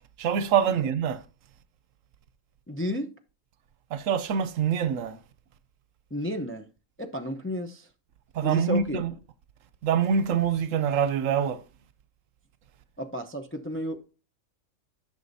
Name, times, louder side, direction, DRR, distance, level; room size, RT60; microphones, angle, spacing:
voice 1, 0.2-1.2 3.9-5.2 8.3-9.1 9.8-11.6, right 7 dB, 75° right, 1.0 m, -25 dB
voice 2, 2.7-3.1 6.1-6.7 7.0-7.9 8.4-9.0 13.0-14.1, equal, 15° left, 0.5 m, -32 dB
11.0 x 6.9 x 2.7 m
omnidirectional pair, 1.4 m